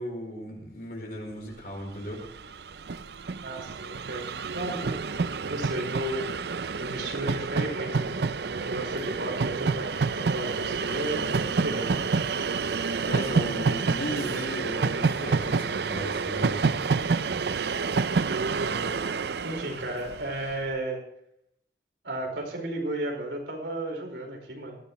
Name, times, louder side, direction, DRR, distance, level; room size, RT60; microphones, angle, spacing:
voice 1, 0.0-2.2 13.0-16.6, equal, 55° left, 1 dB, 4.7 m, -36 dB
Train, 1.9-2.0 2.2-20.6, right 4 dB, 65° right, 0.5 m, -28 dB
voice 2, 3.4-6.3 6.8-8.3 8.6-9.9 10.1-12.1 18.6-18.9 19.4-21.0 22.0-24.8, right 1 dB, 80° right, 1 dB, 4.8 m, -34 dB
19.0 x 15.0 x 3.1 m, 0.74 s
head